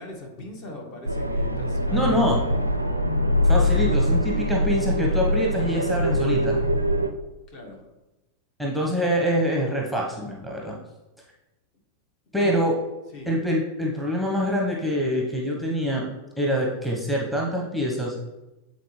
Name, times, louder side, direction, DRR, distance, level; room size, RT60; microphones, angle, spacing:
voice 1, 0.0-2.2 7.5-7.8 12.3-12.6 13.1-13.3, equal, 45° left, 1 dB, 1.5 m, -40 dB
sound 1, 1.0-7.1, left 1 dB, 90° right, 0.4 m, -23 dB
voice 2, 1.9-2.4 3.4-6.6 8.6-10.8 12.3-12.8 13.3-16.1 16.4-18.1, equal, ahead, -2 dB, 0.9 m, -25 dB
8.1 x 4.1 x 3.2 m, 1.0 s
figure-of-eight pair, 90°, 0 cm